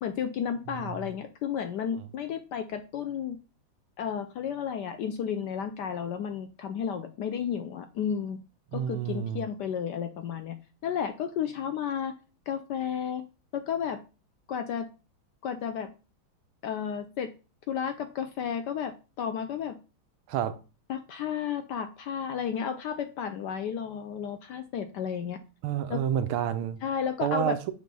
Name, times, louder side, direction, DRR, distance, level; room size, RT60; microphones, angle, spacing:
voice 1, 0.0-3.4 4.0-8.4 8.7-10.6 10.8-12.1 12.5-13.2 13.5-14.0 14.5-14.9 15.4-15.9 16.6-17.3 17.7-19.7 20.9-25.4 25.9-26.0 26.8-27.7, left 8 dB, 70° left, 1.0 m, -32 dB
voice 2, 0.7-1.1 1.9-2.0 8.7-9.4 20.3-20.6 25.6-26.8 27.2-27.7, right 10 dB, 85° right, 1.5 m, -29 dB
6.5 x 3.3 x 5.3 m
omnidirectional pair, 2.3 m